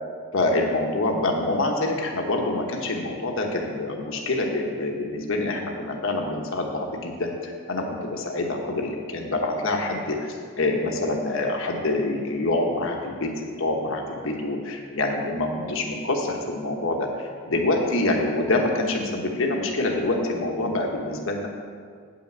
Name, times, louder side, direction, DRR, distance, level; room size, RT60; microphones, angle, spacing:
voice 1, 0.3-13.3 13.6-21.5, left 2 dB, 60° left, 1 dB, 1.1 m, -26 dB
8.5 x 5.8 x 7.8 m, 2.1 s
head